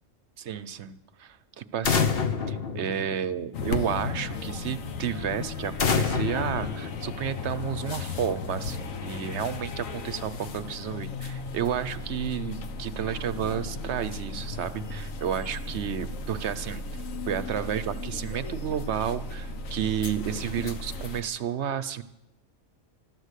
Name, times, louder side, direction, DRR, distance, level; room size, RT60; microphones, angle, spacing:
voice 1, 0.4-2.2 2.5-22.0, right 8 dB, 60° right, 14 dB, 1.0 m, -31 dB
sound 1, 1.8-3.6 5.8-7.6, left 6 dB, 50° left, 1.1 m, -27 dB
sound 2, 3.5-21.2, left 3 dB, 80° left, 1.4 m, -35 dB
13.0 x 13.0 x 8.2 m, 0.99 s
omnidirectional pair, 1.4 m